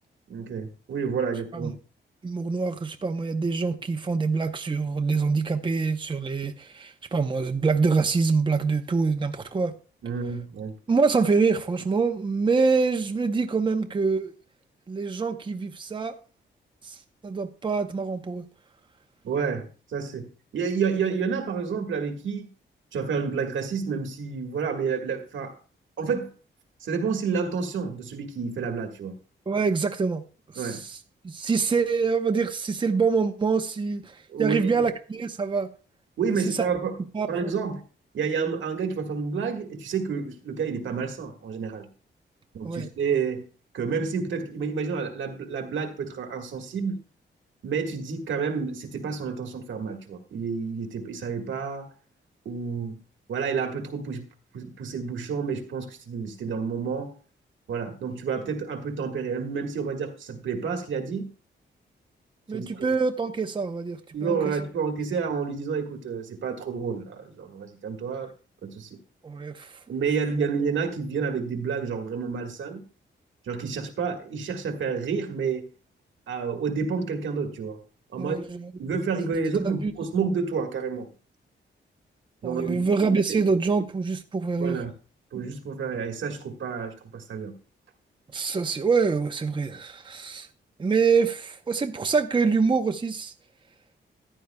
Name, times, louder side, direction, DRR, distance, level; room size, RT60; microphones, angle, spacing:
voice 1, 0.3-1.7 10.0-10.7 19.2-22.5 22.9-25.6 26.0-26.3 26.8-29.1 30.6-30.8 34.3-34.8 36.2-37.0 37.3-37.8 38.1-41.9 42.5-43.5 43.7-47.0 47.6-51.9 52.4-53.0 53.3-57.1 57.7-61.3 62.5-62.9 64.1-68.3 68.6-69.0 69.9-72.8 73.4-75.7 76.3-77.8 78.1-78.4 78.8-81.1 82.4-82.9 84.6-84.9 85.3-87.5, right 5 dB, 85° right, 1.6 m, -29 dB
voice 2, 2.2-9.7 10.9-14.3 14.9-16.1 16.8-17.0 17.2-18.4 29.5-30.2 30.5-31.0 31.2-35.7 37.1-37.5 42.6-42.9 62.5-64.4 69.2-69.7 78.2-78.7 79.2-79.3 79.6-79.9 82.4-84.8 88.3-90.5 90.8-93.3, right 4 dB, 25° right, 0.7 m, -25 dB
14.5 x 10.0 x 2.2 m
cardioid pair, 110°, 19 cm